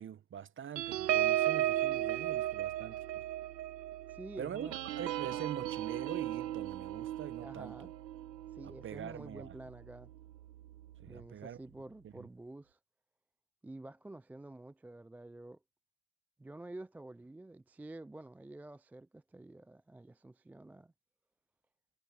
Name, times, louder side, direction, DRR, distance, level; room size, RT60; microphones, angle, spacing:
voice 1, 0.0-3.2 4.4-7.9 8.6-9.5 11.0-11.6 12.0-12.3, right 9 dB, 25° right, 1.3 m, -44 dB
sound 1, 0.8-9.7 10.1-10.3 10.6-10.9, right 13 dB, 85° right, 0.9 m, -35 dB
voice 2, 4.1-4.8 7.4-7.9 8.5-10.1 11.1-12.8 13.6-15.6 16.4-20.9, right 2 dB, 5° right, 0.4 m, -49 dB
hypercardioid pair, 90°, 49 cm